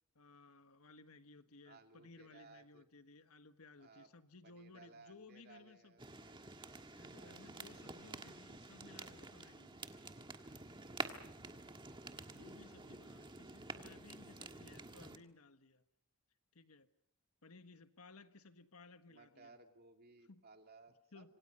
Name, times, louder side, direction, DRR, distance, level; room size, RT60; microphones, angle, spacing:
voice 1, 0.1-6.0 6.8-9.8 12.2-15.8 16.5-16.9 17.4-19.6 20.3-20.4 21.1-21.3, left 3 dB, 80° left, 1.4 m, -60 dB
voice 2, 1.6-2.8 3.8-4.1 4.4-6.6 7.1-7.8 13.7-13.9 19.1-21.4, right 3 dB, 45° right, 2.5 m, -62 dB
sound 1, 6.0-15.2, right 3 dB, 20° right, 1.5 m, -49 dB
26.5 x 26.0 x 5.6 m
head